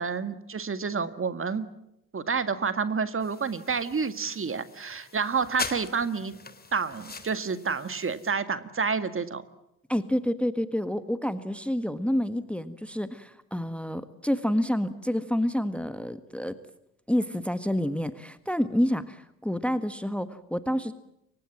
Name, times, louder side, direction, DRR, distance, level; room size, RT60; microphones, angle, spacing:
voice 1, 0.0-1.7 2.1-6.3 6.7-9.4, right 5 dB, 30° right, 11 dB, 2.1 m, -29 dB
sound 1, 3.2-8.3, left 4 dB, 20° left, 3.3 m, -41 dB
voice 2, 9.9-16.6 17.1-20.9, equal, 5° left, 12 dB, 1.6 m, -28 dB
29.0 x 24.5 x 7.4 m, 0.85 s
figure-of-eight pair, 55°, 44 cm